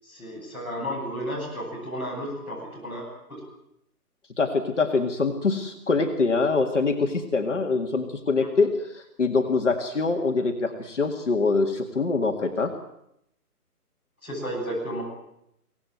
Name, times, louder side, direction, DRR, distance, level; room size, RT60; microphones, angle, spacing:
voice 1, 0.0-3.4 8.4-8.5 14.2-15.0, equal, 5° right, -11 dB, 7.9 m, -33 dB
voice 2, 4.4-12.7, left 4 dB, 50° left, 2 dB, 2.0 m, -24 dB
24.0 x 18.5 x 9.3 m, 0.78 s
hypercardioid pair, 180°, 47 cm